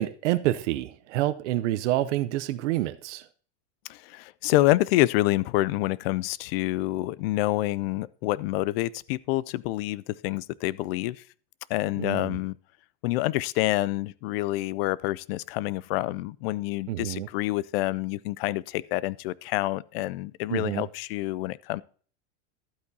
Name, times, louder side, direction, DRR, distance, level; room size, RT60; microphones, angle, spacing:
voice 1, 0.0-3.3 12.0-12.4 16.9-17.3 20.5-20.8, right 15 dB, 80° right, 0.7 m, -28 dB
voice 2, 3.9-11.2 11.7-12.5 13.0-21.8, left 17 dB, 55° left, 0.4 m, -27 dB
12.5 x 8.4 x 2.7 m
supercardioid pair, 155°, 35 cm